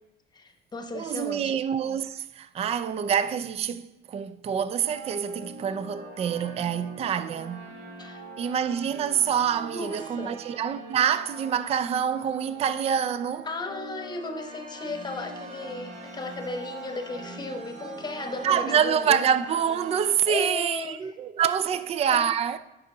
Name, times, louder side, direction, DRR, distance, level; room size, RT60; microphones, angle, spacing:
voice 1, 0.3-1.5 8.0-8.2 9.6-10.4 13.4-19.2 20.3-21.1 22.1-22.3, left 3 dB, 25° left, 1.0 m, -35 dB
voice 2, 0.9-7.7 8.4-13.5 18.4-22.6, right 8 dB, 35° right, 0.4 m, -26 dB
sound 1, 4.8-20.1, right 2 dB, 85° right, 1.8 m, -42 dB
10.5 x 5.4 x 3.9 m
cardioid pair, 110°, 17 cm